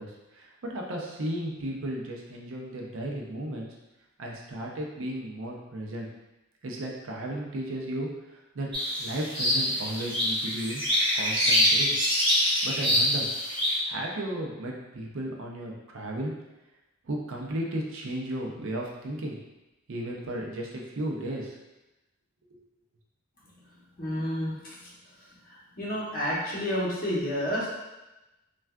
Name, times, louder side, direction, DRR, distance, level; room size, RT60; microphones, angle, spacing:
voice 1, 0.0-3.7 4.2-6.1 6.6-8.7 9.0-10.8 11.1-11.9 12.6-13.3 13.8-16.3 17.1-19.4 19.9-21.6, right 1 dB, 65° right, -1 dB, 0.5 m, -34 dB
sound 1, 8.7-13.8, left 1 dB, 25° right, 0.8 m, -25 dB
voice 2, 24.0-24.9 25.5-27.7, equal, 40° left, -8 dB, 0.9 m, -30 dB
3.3 x 2.3 x 2.2 m, 1.0 s
head